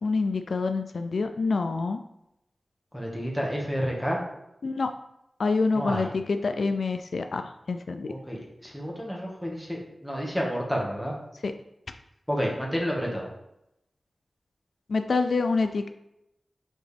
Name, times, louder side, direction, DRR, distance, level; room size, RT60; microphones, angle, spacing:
voice 1, 0.0-2.0 4.6-4.9 5.4-8.1 11.4-11.5 14.9-15.9, left 4 dB, 80° left, 7 dB, 0.4 m, -26 dB
voice 2, 2.9-4.2 5.7-6.1 8.1-11.1 12.3-13.3, equal, ahead, -3 dB, 1.6 m, -30 dB
7.3 x 3.8 x 3.4 m, 0.85 s
wide cardioid pair, 80°, 0 cm